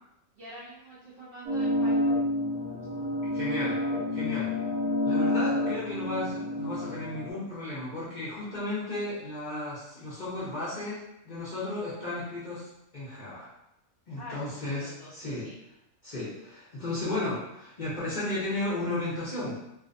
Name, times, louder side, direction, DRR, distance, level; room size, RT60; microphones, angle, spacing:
voice 1, 0.3-2.0 14.2-15.6, equal, 60° right, -7 dB, 0.6 m, -46 dB
sound 1, 1.5-7.3, left 1 dB, 80° right, 1.0 m, -29 dB
voice 2, 3.3-3.8 4.1-4.5 5.0-13.5 14.1-15.5 16.0-19.7, left 2 dB, 50° left, -9 dB, 0.6 m, -34 dB
2.5 x 2.0 x 2.5 m, 0.85 s
omnidirectional pair, 1.4 m